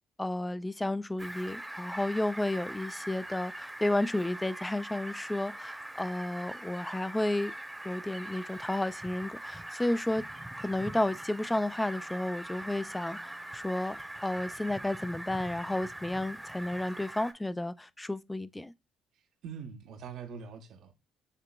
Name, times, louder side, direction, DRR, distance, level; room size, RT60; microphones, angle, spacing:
voice 1, 0.2-7.5 7.8-10.2 10.6-18.7, left 1 dB, 10° left, 0.4 m, -32 dB
Fowl, 1.2-17.3, right 1 dB, 10° right, 0.8 m, -42 dB
voice 2, 19.1-20.9, right 6 dB, 65° right, 0.7 m, -44 dB
6.6 x 2.9 x 2.2 m
hypercardioid pair, 55°, 0 cm